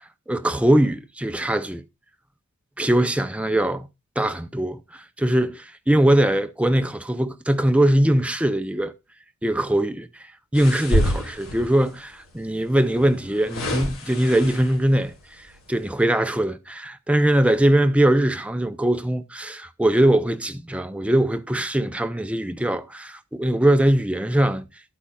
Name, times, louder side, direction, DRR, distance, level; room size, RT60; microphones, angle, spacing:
voice 1, 0.3-1.8 2.8-3.9 4.2-8.9 9.4-10.1 10.5-15.2 15.7-24.7, right 1 dB, 5° right, 0.5 m, -21 dB
sound 1, 10.5-11.9 12.9-14.9 15.5-15.7, equal, 70° left, 3.3 m, -27 dB
11.5 x 8.5 x 2.3 m
head